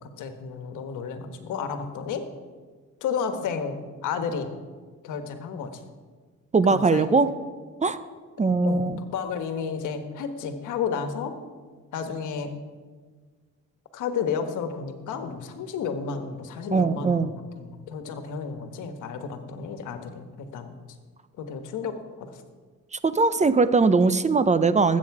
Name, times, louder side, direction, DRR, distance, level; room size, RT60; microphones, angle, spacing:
voice 1, 0.0-2.2 3.0-4.5 5.0-5.8 6.7-7.1 8.6-8.8 9.1-11.3 11.9-12.5 13.9-20.8 21.4-22.4, left 6 dB, 85° left, 7 dB, 1.4 m, -32 dB
voice 2, 6.5-7.3 7.8-8.0 8.4-9.0 16.7-17.3 22.9-25.0, right 4 dB, 25° right, 13 dB, 0.7 m, -20 dB
19.5 x 8.5 x 4.8 m, 1.5 s
cardioid pair, 90°, 30 cm